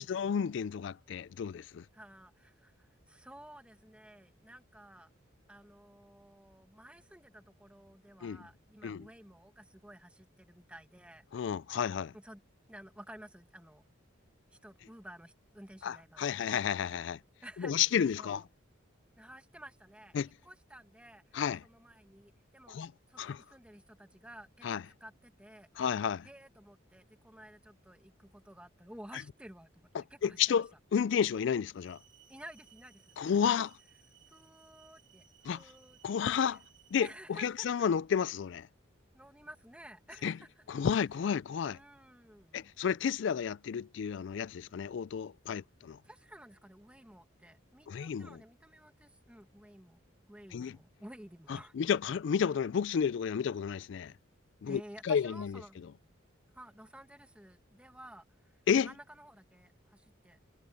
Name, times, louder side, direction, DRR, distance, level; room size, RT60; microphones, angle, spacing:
voice 1, 0.0-1.8 8.2-8.4 8.8-9.0 11.3-12.1 15.8-17.2 17.6-18.4 20.1-20.3 21.3-21.6 22.7-22.9 23.2-23.4 24.6-24.8 25.8-26.3 29.9-32.0 33.2-33.7 35.5-35.6 36.0-36.6 36.9-37.1 37.4-38.7 40.2-40.4 40.7-41.8 42.5-46.0 47.9-48.3 50.5-50.8 51.5-54.1 54.6-55.6 58.7-58.9, left 7 dB, 60° left, 0.3 m, -31 dB
voice 2, 1.9-5.1 5.5-11.2 12.1-12.4 12.7-13.8 14.5-16.3 17.4-17.9 18.2-18.4 19.2-22.8 23.1-25.7 26.2-30.6 32.3-33.7 34.3-36.6 37.0-37.7 39.1-40.6 41.7-42.6 46.0-50.0 50.3-51.7 54.6-55.8 56.5-60.4, right 1 dB, 5° right, 1.9 m, -53 dB
sound 1, 31.7-37.2, right 9 dB, 25° right, 2.7 m, -63 dB
head